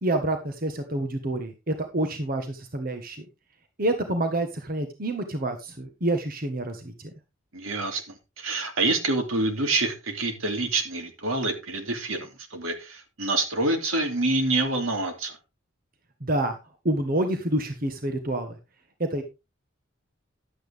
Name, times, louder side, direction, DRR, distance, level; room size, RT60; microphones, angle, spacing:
voice 1, 0.0-3.2 3.8-6.9 16.2-16.6 16.8-18.6 19.0-19.2, right 1 dB, 45° right, 6 dB, 1.4 m, -27 dB
voice 2, 7.5-15.4, right 2 dB, 85° right, 5 dB, 2.7 m, -27 dB
11.5 x 8.6 x 3.5 m, 0.26 s
head